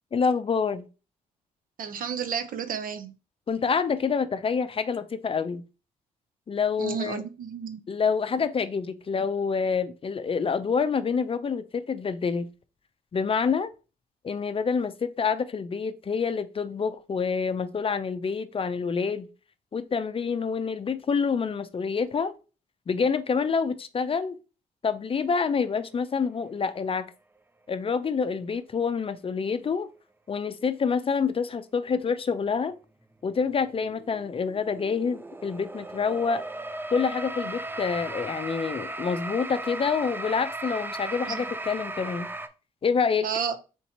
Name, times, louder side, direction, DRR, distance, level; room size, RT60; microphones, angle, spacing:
voice 1, 0.1-0.8 3.5-5.6 6.5-7.2 7.9-12.5 13.1-13.7 14.2-19.3 19.7-22.4 22.9-24.4 24.8-27.1 27.7-29.9 30.3-32.7 33.2-36.4 36.9-42.3 42.8-43.3, left 5 dB, 35° left, 0.5 m, -27 dB
voice 2, 1.8-3.1 6.8-7.8 41.3-41.5 43.2-43.6, right 7 dB, 65° right, 0.6 m, -31 dB
sound 1, 33.3-42.5, right 2 dB, 15° right, 0.5 m, -36 dB
3.6 x 2.9 x 4.2 m
cardioid pair, 70°, 15 cm